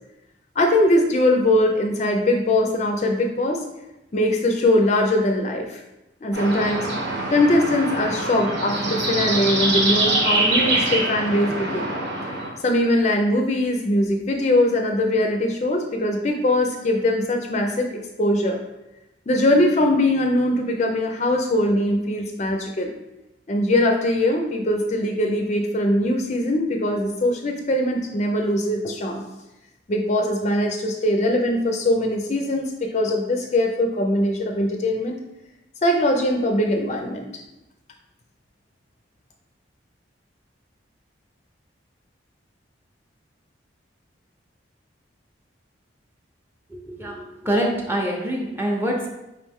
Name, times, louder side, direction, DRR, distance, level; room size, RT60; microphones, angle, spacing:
voice 1, 0.6-3.6 4.1-5.8 6.2-7.0 7.3-11.9 12.3-18.6 19.3-22.9 23.5-29.2 29.9-35.1 35.8-37.3, left 1 dB, 35° left, 3 dB, 0.4 m, -21 dB
sound 1, 6.3-12.5, right 2 dB, 70° right, 1.0 m, -24 dB
voice 2, 46.7-49.1, right 1 dB, 10° right, -1 dB, 0.6 m, -25 dB
4.8 x 3.1 x 3.5 m, 0.94 s
head